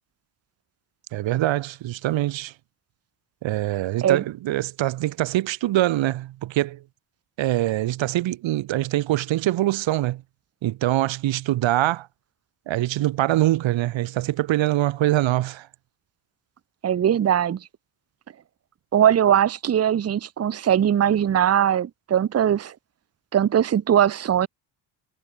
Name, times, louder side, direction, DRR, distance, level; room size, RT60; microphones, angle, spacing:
voice 1, 1.1-2.5 3.4-6.8 7.4-10.2 10.6-12.1 12.7-15.7, right 15 dB, 65° right, 1.6 m, -24 dB
voice 2, 16.8-17.6 18.9-22.7 23.3-24.5, right 9 dB, 30° right, 0.9 m, -20 dB
cardioid pair, 120°, 49 cm